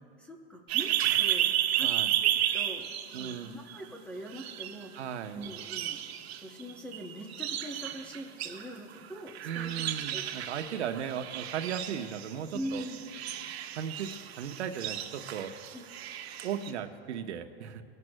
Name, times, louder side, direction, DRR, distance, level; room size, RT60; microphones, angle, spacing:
voice 1, 0.2-0.9 1.2-1.9 2.2-5.0 5.3-6.0 6.4-10.2 12.5-13.0 15.7-15.8, equal, 5° left, 2 dB, 0.6 m, -42 dB
sound 1, 0.7-3.9 4.3-5.2 5.4-16.7, right 12 dB, 70° right, 1.3 m, -33 dB
voice 2, 1.8-2.1 3.1-3.5 4.9-5.5 9.4-12.8 13.8-14.1 14.4-15.5 16.4-17.8, right 8 dB, 90° right, 6 dB, 1.1 m, -36 dB
24.5 x 11.0 x 2.2 m, 2.6 s
supercardioid pair, 160°, 33 cm